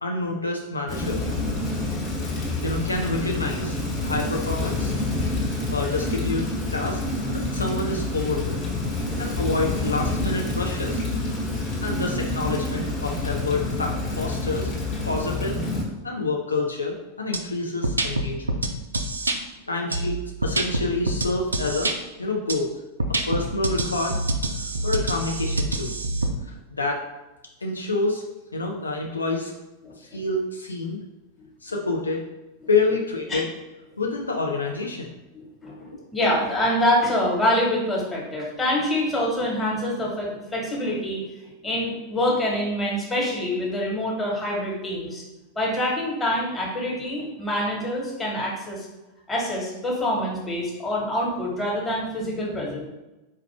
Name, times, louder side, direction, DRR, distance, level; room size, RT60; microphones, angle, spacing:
voice 1, 0.0-1.2 2.4-4.9 5.7-6.5 6.7-7.0 7.3-8.6 9.2-11.1 11.8-14.7 15.0-15.6 16.0-18.6 19.7-21.9 22.2-22.7 23.1-24.2 24.5-25.9 26.5-27.0 27.6-28.2 28.5-29.5 30.0-31.0 31.6-32.2 32.7-33.5 34.0-35.1 35.8-36.1, left 3 dB, 80° left, 0 dB, 0.4 m, -28 dB
Rain, 0.9-15.8, left 2 dB, 35° left, 1.2 m, -27 dB
voice 2, 11.4-11.8 29.8-30.2 31.4-31.5 33.3-33.4 35.3-41.2 41.6-45.2 45.5-48.9 49.3-52.9, left 1 dB, 15° left, -4 dB, 1.3 m, -26 dB
sound 1, 17.3-17.4 17.8-19.4 19.9-22.0 22.5-22.6 23.0-26.3, right 2 dB, 80° right, 0.3 m, -26 dB
4.3 x 2.4 x 3.2 m, 1.0 s
figure-of-eight pair, 90°, 0 cm